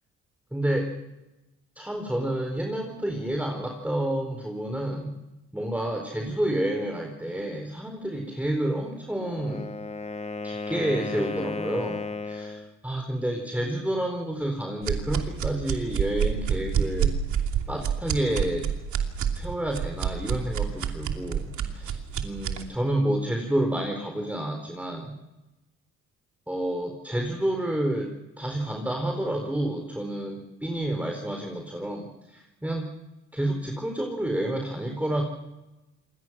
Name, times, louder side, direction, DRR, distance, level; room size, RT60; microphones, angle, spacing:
voice 1, 0.5-0.9 1.8-5.1 5.5-9.7 10.4-17.1 17.7-18.7 19.3-25.1 26.5-32.9 33.3-35.2, right 1 dB, 5° right, 3 dB, 4.4 m, -29 dB
Wind instrument woodwind instrument, 9.1-12.7, left 4 dB, 20° left, 1.4 m, -34 dB
sound 1, 14.8-22.6, right 8 dB, 70° right, 2.9 m, -28 dB
28.0 x 22.0 x 6.2 m, 1.0 s
cardioid pair, 90°, 30 cm